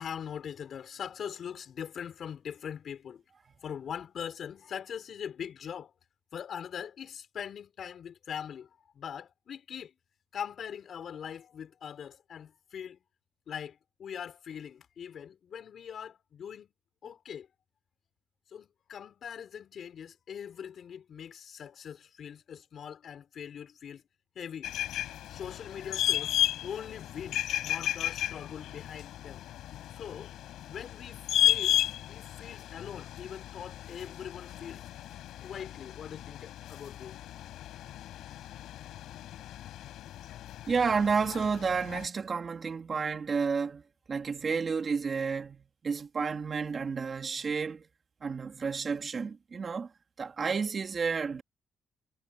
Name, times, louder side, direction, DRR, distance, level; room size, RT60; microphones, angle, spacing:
voice 1, 0.0-3.2 3.6-5.9 6.3-9.9 10.3-13.0 13.5-16.7 17.0-17.5 18.5-24.0 24.3-24.8 25.3-26.3 26.6-29.4 29.9-30.3 30.7-34.8 35.4-37.2, left 8 dB, 60° left, 4.5 m, -42 dB
sound 1, 24.6-42.1, left 12 dB, 85° left, 4.5 m, -34 dB
voice 2, 40.7-43.8 44.1-47.8 48.2-49.9 50.2-51.4, right 5 dB, 40° right, 2.8 m, -31 dB
cardioid pair, 90°, 0 cm